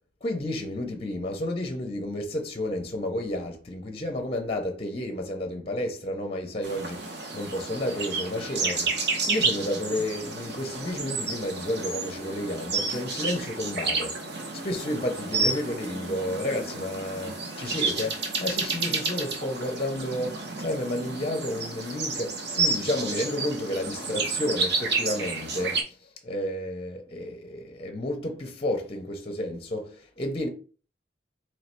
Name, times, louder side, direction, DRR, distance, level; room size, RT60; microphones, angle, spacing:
voice 1, 0.2-14.2 14.6-30.5, left 1 dB, 30° left, 0.6 m, -31 dB
sound 1, 6.6-25.8, right 3 dB, 65° right, 0.9 m, -31 dB
3.1 x 3.1 x 4.4 m
head